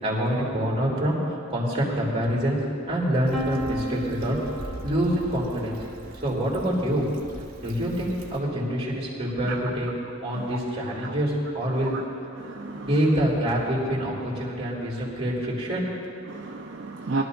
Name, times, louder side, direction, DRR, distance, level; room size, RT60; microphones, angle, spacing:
voice 1, 0.0-2.6 2.9-4.4 4.8-5.8 6.2-7.1 7.6-9.9 10.2-11.9 12.6-16.1, equal, 30° right, -5 dB, 3.1 m, -26 dB
Stream / Traffic noise roadway noise / Trickle dribble, 3.2-8.4, right 1 dB, 45° right, 1.4 m, -42 dB
Piano, 3.3-9.1, equal, 5° right, 1.3 m, -38 dB
voice 2, 12.3-12.9 16.3-17.2, right 3 dB, 60° right, 0 dB, 0.6 m, -33 dB
21.5 x 12.0 x 2.6 m, 2.5 s
head